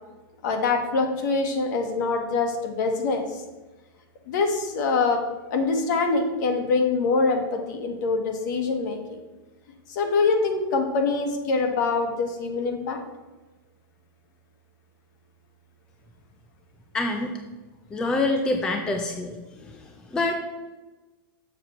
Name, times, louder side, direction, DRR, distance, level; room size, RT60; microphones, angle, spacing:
voice 1, 0.4-3.4 4.3-5.2 5.5-9.2 9.9-13.0, left 4 dB, 50° left, 5 dB, 1.4 m, -24 dB
voice 2, 16.9-17.3 17.9-19.3 19.6-19.7 20.1-20.4, left 2 dB, 5° left, 4 dB, 0.4 m, -25 dB
6.9 x 5.8 x 5.7 m, 1.2 s
supercardioid pair, 170°, 12 cm